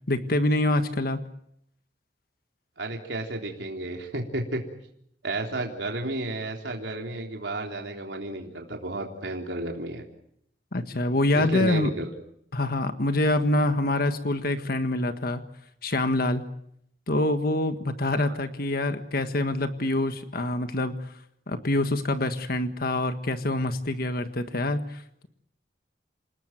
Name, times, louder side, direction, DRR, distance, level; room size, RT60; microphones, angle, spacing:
voice 1, 0.1-1.2 10.7-11.9 12.5-15.4 15.8-16.4 17.1-21.1 21.5-25.3, left 1 dB, 55° left, 9 dB, 1.6 m, -26 dB
voice 2, 2.8-4.6 5.2-10.0 11.3-12.1 18.2-18.4, right 2 dB, 75° right, 1 dB, 3.6 m, -32 dB
28.5 x 18.5 x 9.2 m, 0.73 s
head